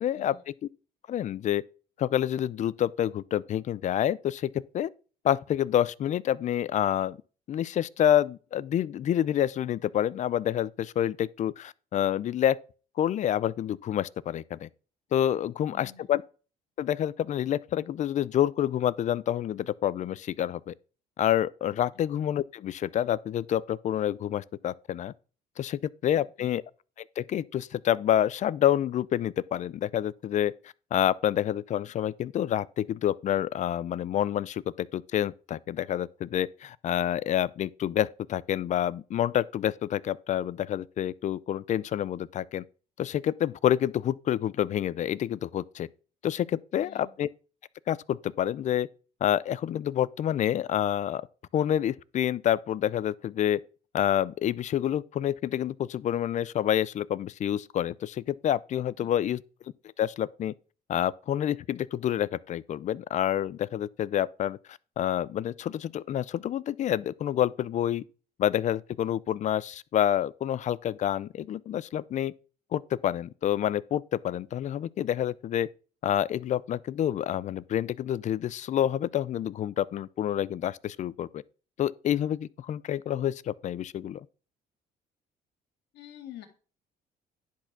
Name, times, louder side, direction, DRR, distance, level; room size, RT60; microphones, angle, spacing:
voice 1, 0.0-0.5 1.1-1.6 2.0-4.9 5.2-7.2 7.5-12.6 13.0-14.7 15.1-16.2 16.8-20.7 21.2-25.1 25.6-26.6 27.2-30.5 30.9-42.6 43.0-45.9 46.2-47.3 47.9-48.9 49.2-51.3 51.5-53.6 53.9-59.4 60.0-60.5 60.9-68.0 68.4-72.3 72.7-75.7 76.0-81.4 81.8-84.2, left 11 dB, 45° left, 0.4 m, -28 dB
voice 2, 15.7-16.1 26.1-26.5 46.8-47.1 59.0-59.1 85.9-86.5, left 11 dB, 80° left, 2.1 m, -47 dB
10.5 x 4.3 x 5.9 m
cardioid pair, 110°, 17 cm